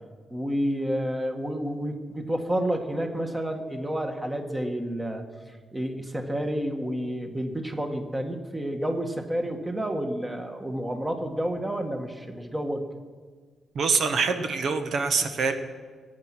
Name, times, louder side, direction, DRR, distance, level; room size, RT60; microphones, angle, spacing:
voice 1, 0.3-5.2 5.7-12.9, equal, 15° right, 4 dB, 1.8 m, -30 dB
voice 2, 13.7-15.6, right 5 dB, 65° right, 7 dB, 1.3 m, -25 dB
20.5 x 9.6 x 6.1 m, 1.5 s
cardioid pair, 110°, 0 cm